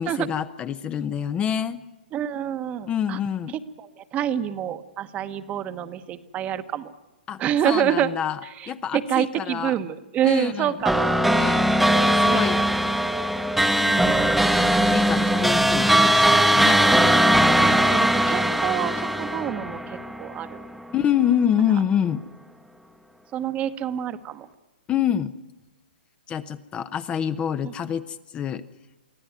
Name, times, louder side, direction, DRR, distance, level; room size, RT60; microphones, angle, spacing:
voice 1, 0.0-1.8 2.9-3.6 7.3-8.4 8.7-9.7 10.2-10.7 11.3-11.6 12.0-12.6 14.7-16.8 20.9-22.2 24.9-25.3 26.3-28.6, left 9 dB, 20° left, 12 dB, 0.7 m, -26 dB
voice 2, 2.1-3.2 3.8-6.9 7.4-8.1 8.6-11.6 12.0-12.4 13.8-14.4 16.7-17.3 17.6-20.6 21.7-21.8 23.3-24.5 27.6-27.7, right 10 dB, 25° right, 12 dB, 1.1 m, -27 dB
sound 1, 10.8-20.5, right 1 dB, ahead, 1.0 m, -20 dB
24.0 x 15.0 x 9.4 m, 1.1 s
hypercardioid pair, 125°, 5 cm